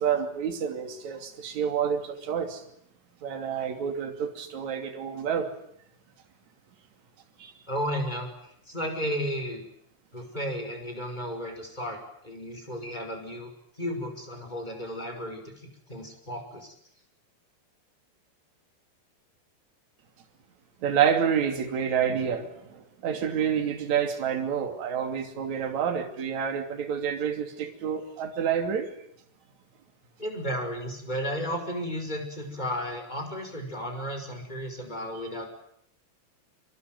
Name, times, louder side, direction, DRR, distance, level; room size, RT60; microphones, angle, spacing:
voice 1, 0.0-2.6 3.2-5.5 7.4-7.5 20.8-28.9, right 8 dB, 45° right, 5 dB, 3.7 m, -28 dB
voice 2, 7.7-8.3 8.7-9.6 10.1-13.5 13.8-16.7 30.2-35.5, equal, 10° left, 4 dB, 5.4 m, -33 dB
26.0 x 23.5 x 9.4 m, 0.71 s
omnidirectional pair, 4.7 m